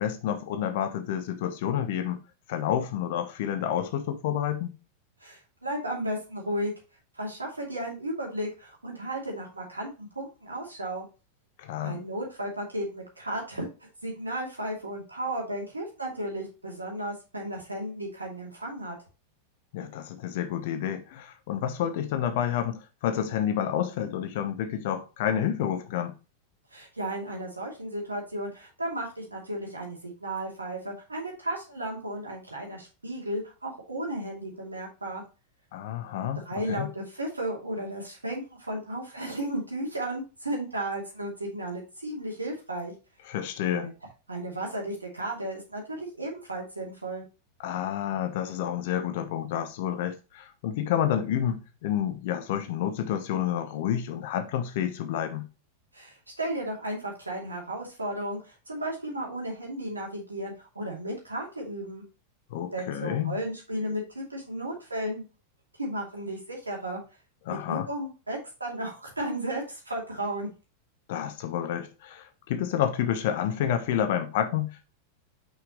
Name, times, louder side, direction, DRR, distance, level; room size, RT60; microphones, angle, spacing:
voice 1, 0.0-2.2 2.5-4.7 11.6-12.0 19.7-26.1 35.7-36.4 36.7-36.9 43.3-43.9 47.6-55.5 62.5-63.4 67.5-67.9 71.1-74.9, left 10 dB, 50° left, 1.0 m, -29 dB
voice 2, 5.2-6.7 7.1-11.0 11.8-13.7 14.0-19.0 26.7-35.2 36.4-42.9 43.6-43.9 44.3-47.2 55.9-62.0 62.7-65.2 65.8-67.0 67.5-70.5, right 1 dB, 80° right, 2.5 m, -34 dB
5.9 x 5.7 x 3.0 m
figure-of-eight pair, 90°, 0 cm